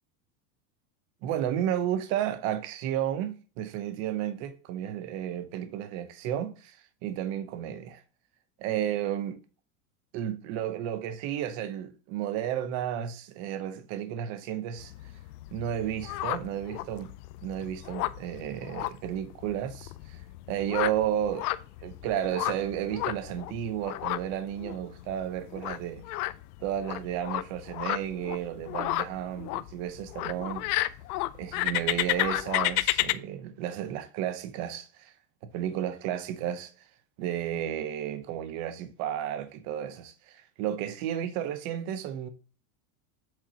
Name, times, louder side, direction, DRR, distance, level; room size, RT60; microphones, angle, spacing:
voice 1, 1.2-8.0 8.6-9.4 10.1-14.9 15.5-17.1 17.4-20.2 20.5-21.5 21.8-26.2 26.6-30.7 31.3-35.1 35.5-36.7 37.2-42.3, right 10 dB, 40° right, 0.8 m, -32 dB
sound 1, 14.8-33.1, left 17 dB, 80° left, 0.6 m, -33 dB
8.0 x 7.0 x 2.9 m
supercardioid pair, 170°, 45 cm